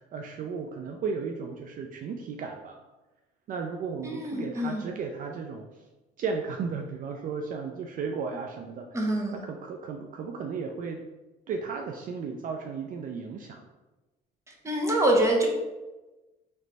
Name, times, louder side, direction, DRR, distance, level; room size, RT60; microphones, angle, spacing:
voice 1, 0.0-2.8 3.5-5.9 6.2-8.9 9.4-11.0 11.5-13.6, right 5 dB, 55° right, 3 dB, 0.4 m, -34 dB
voice 2, 4.0-4.9 8.9-9.4 14.6-15.5, right 1 dB, 15° right, 0 dB, 0.9 m, -25 dB
3.2 x 3.1 x 4.0 m, 1.1 s
cardioid pair, 110°, 17 cm